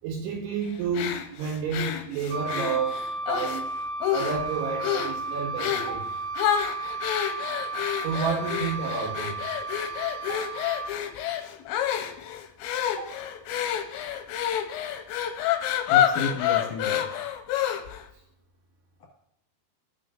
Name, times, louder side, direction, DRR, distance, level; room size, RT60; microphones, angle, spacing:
voice 1, 0.0-3.7 4.1-6.1 8.0-9.4 10.2-10.4 12.9-13.1, right 5 dB, 75° right, 3.0 m, -30 dB
sound 1, 0.9-3.6 4.0-4.5 4.8-5.2 5.6-6.0 6.4-18.0, left 10 dB, 90° left, 3.0 m, -28 dB
Wind instrument woodwind instrument, 2.3-11.0, right 3 dB, 90° right, 3.8 m, -34 dB
voice 2, 15.9-17.1, left 4 dB, 55° left, 2.6 m, -31 dB
16.0 x 6.5 x 2.6 m
omnidirectional pair, 5.3 m